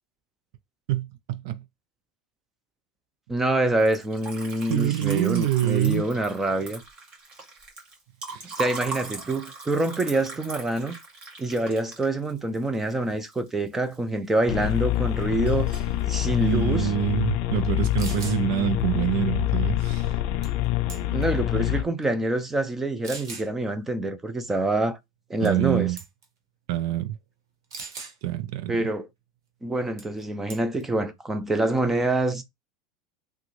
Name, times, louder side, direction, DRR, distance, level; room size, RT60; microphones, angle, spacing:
voice 1, 0.9-1.6 4.7-6.1 8.3-8.6 16.4-20.1 25.4-26.0 26.7-27.2 28.2-28.9, right 12 dB, 65° right, 0.5 m, -26 dB
voice 2, 3.3-6.8 8.6-11.0 11.4-15.7 16.1-16.9 21.1-25.0 25.3-25.9 28.7-29.1 29.6-32.4, right 2 dB, 15° right, 0.6 m, -26 dB
Liquid, 3.7-14.0 14.3-15.0 15.2-16.0, right 3 dB, 40° right, 1.9 m, -40 dB
sound 1, 14.5-21.8, left 14 dB, 60° left, 0.5 m, -26 dB
sound 2, 17.6-17.7 18.0-18.4 20.4-20.6 20.9-21.3 22.0-22.1 23.0-23.5 25.4-25.7 26.0-26.2 27.7-28.2 30.0-30.2 30.5-30.8, right 4 dB, 85° right, 1.0 m, -39 dB
3.5 x 2.2 x 3.2 m
hypercardioid pair, 100°, 2 cm